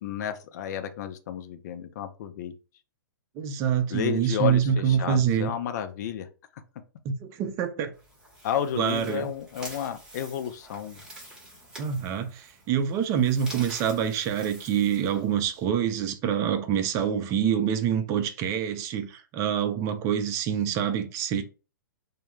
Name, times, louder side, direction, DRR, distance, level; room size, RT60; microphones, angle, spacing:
voice 1, 0.0-2.5 3.9-6.3 8.4-11.0, left 9 dB, 50° left, 0.4 m, -31 dB
voice 2, 3.4-5.5 7.0-7.9 8.8-9.3 11.8-21.4, right 8 dB, 25° right, 0.4 m, -26 dB
sound 1, 7.9-15.6, right 1 dB, 5° right, 0.9 m, -47 dB
2.2 x 2.1 x 3.0 m
hypercardioid pair, 135°, 12 cm